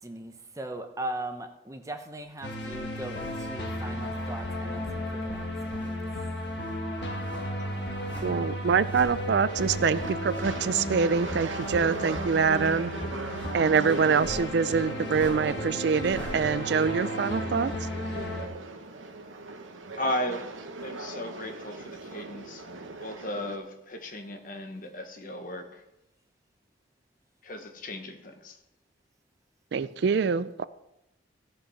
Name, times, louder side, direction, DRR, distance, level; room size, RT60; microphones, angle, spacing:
voice 1, 0.0-6.0 7.3-8.7, right 1 dB, 15° right, 6 dB, 0.8 m, -40 dB
sound 1, 2.4-18.5, equal, 60° left, 1.6 m, -34 dB
sound 2, 2.6-5.0 5.3-16.5, equal, 10° left, 3.0 m, -49 dB
voice 2, 8.2-12.9 13.5-17.7 29.7-30.6, right 5 dB, 60° right, 16 dB, 0.4 m, -25 dB
sound 3, 9.5-23.6, right 3 dB, 85° right, 1.1 m, -39 dB
voice 3, 19.9-20.5 20.8-22.6 23.0-25.8 27.4-28.6, left 1 dB, 45° left, 6 dB, 1.2 m, -35 dB
15.5 x 5.5 x 5.7 m, 0.91 s
head